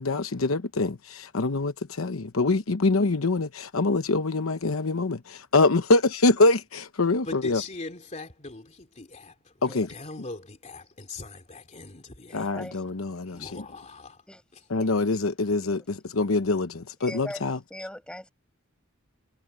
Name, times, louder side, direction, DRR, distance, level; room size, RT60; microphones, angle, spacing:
voice 1, 0.0-7.6 9.6-9.9 12.3-13.6 14.7-17.6, left 3 dB, 80° left, 0.9 m, -25 dB
voice 2, 7.2-12.5 12.9-13.0 13.2-14.2 14.5-14.7, left 3 dB, 35° left, 2.8 m, -41 dB
voice 3, 12.3-12.8 14.3-14.4 14.7-14.9 17.1-17.4 17.7-18.3, left 1 dB, 5° left, 6.3 m, -40 dB
head